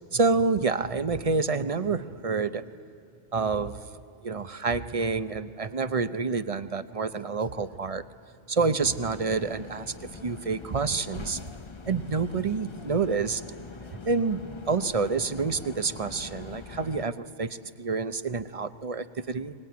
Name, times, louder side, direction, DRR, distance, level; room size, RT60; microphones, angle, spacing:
voice 1, 0.1-2.7 3.3-8.0 8.5-9.9 10.2-11.4 11.8-13.4 14.1-19.5, right 4 dB, 35° right, 13 dB, 0.7 m, -28 dB
sound 1, 8.8-17.1, left 4 dB, 30° left, 0.7 m, -43 dB
23.5 x 20.5 x 9.5 m, 2.6 s
omnidirectional pair, 1.2 m